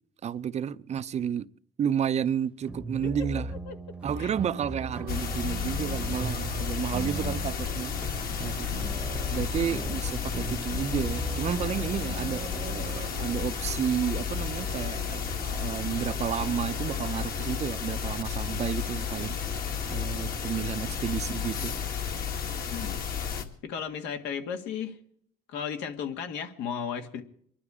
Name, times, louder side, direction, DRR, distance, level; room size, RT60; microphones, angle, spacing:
voice 1, 0.2-1.5 1.8-3.5 4.0-7.9 8.4-8.9 9.3-21.7, right 8 dB, 40° right, 0.5 m, -31 dB
sound 1, 2.7-15.5, right 1 dB, 5° right, 0.9 m, -39 dB
sound 2, 4.0-17.6, right 8 dB, 65° right, 1.0 m, -46 dB
sound 3, 5.1-23.4, left 7 dB, 60° left, 2.0 m, -32 dB
voice 2, 23.6-25.0 25.5-27.2, left 7 dB, 85° left, 1.9 m, -34 dB
24.0 x 11.5 x 4.9 m
cardioid pair, 110°, 17 cm